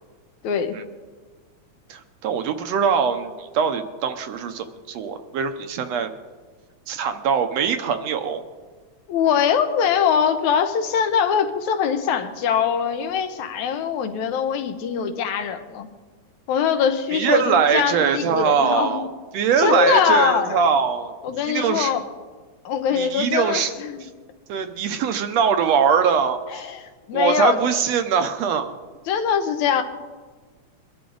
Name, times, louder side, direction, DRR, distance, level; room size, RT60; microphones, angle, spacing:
voice 1, 0.4-0.8 9.1-15.9 16.5-19.0 19.6-20.6 21.2-22.0 22.7-24.1 26.6-26.8 27.1-27.6 29.1-29.8, left 7 dB, 80° left, 8 dB, 2.3 m, -22 dB
voice 2, 1.9-6.1 6.9-8.4 17.1-19.1 19.3-21.1 21.5-21.9 22.9-23.7 24.0-24.1 24.5-26.7 27.1-28.8, right 6 dB, 70° right, 8 dB, 1.8 m, -22 dB
22.5 x 12.0 x 3.9 m, 1.4 s
omnidirectional pair, 3.3 m